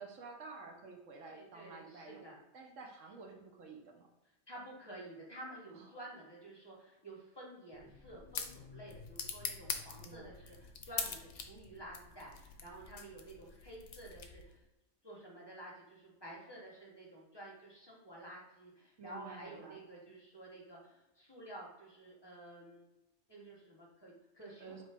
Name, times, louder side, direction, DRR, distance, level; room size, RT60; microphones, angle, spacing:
voice 1, 0.0-2.2 2.5-4.1 5.7-5.8 10.0-10.4 19.0-19.8 24.6-24.8, right 4 dB, 70° right, 2 dB, 1.0 m, -51 dB
voice 2, 1.3-2.4 4.5-14.6 15.0-22.9 23.3-24.8, right 1 dB, 20° left, -3 dB, 0.8 m, -51 dB
sound 1, 7.7-14.6, left 6 dB, 70° left, 0.8 m, -44 dB
4.1 x 3.1 x 3.3 m, 0.95 s
omnidirectional pair, 1.4 m